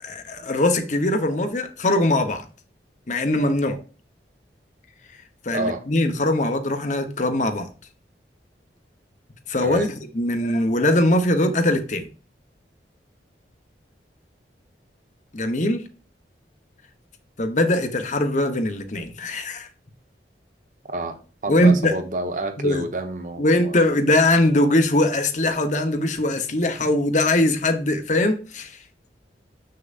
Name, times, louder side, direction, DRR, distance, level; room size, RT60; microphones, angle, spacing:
voice 1, 0.0-2.4 3.1-3.8 5.4-7.7 9.5-12.1 15.3-15.8 17.4-19.7 21.5-22.0 22.6-22.8 23.4-28.8, left 1 dB, 45° left, 0.9 m, -21 dB
voice 2, 5.5-5.8 9.6-9.9 20.9-23.9, right 2 dB, 45° right, 0.9 m, -29 dB
6.8 x 6.5 x 2.5 m
head